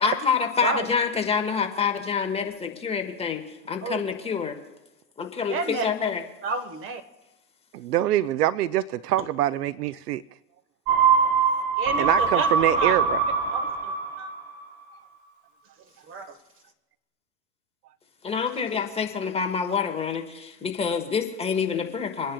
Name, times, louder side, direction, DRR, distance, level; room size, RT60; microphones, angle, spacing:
voice 1, 0.0-4.6 5.2-6.2 18.2-22.3, left 6 dB, 10° left, 4 dB, 1.2 m, -27 dB
voice 2, 5.5-5.8 6.4-7.0 11.8-13.0 13.5-14.3 16.1-16.4, right 4 dB, 25° right, 9 dB, 1.3 m, -30 dB
voice 3, 7.7-10.2 12.0-13.2, right 13 dB, 70° right, 18 dB, 0.5 m, -24 dB
sound 1, 10.9-14.6 14.9-15.0, right 5 dB, 45° right, 3.8 m, -23 dB
28.5 x 10.0 x 2.3 m, 1.0 s
hypercardioid pair, 115°, 49 cm